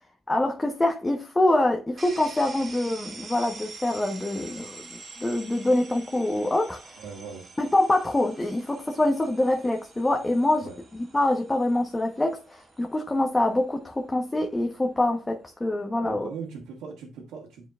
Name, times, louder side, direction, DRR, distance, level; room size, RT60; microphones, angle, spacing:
voice 1, 0.3-7.0 7.6-10.7 11.1-16.3, left 1 dB, 15° left, 1.0 m, -25 dB
sound 1, 2.0-15.7, right 4 dB, 40° right, 2.1 m, -47 dB
voice 2, 7.0-7.4 10.6-10.7 16.1-17.7, right 5 dB, 85° right, 1.8 m, -39 dB
8.7 x 4.9 x 2.4 m
cardioid pair, 90°, 0 cm